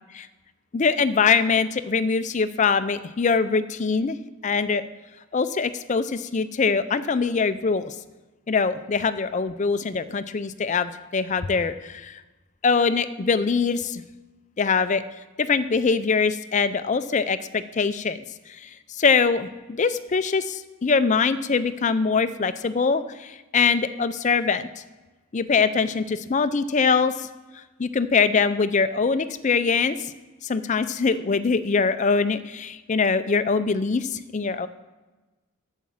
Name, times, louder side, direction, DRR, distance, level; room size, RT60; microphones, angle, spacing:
voice 1, 0.7-4.2 4.4-4.8 5.3-7.9 8.5-12.2 12.6-14.0 14.6-15.0 15.4-24.7 25.3-27.3 27.8-30.1 30.4-34.7, left 5 dB, 35° left, 12 dB, 0.4 m, -23 dB
8.8 x 7.3 x 7.2 m, 1.2 s
head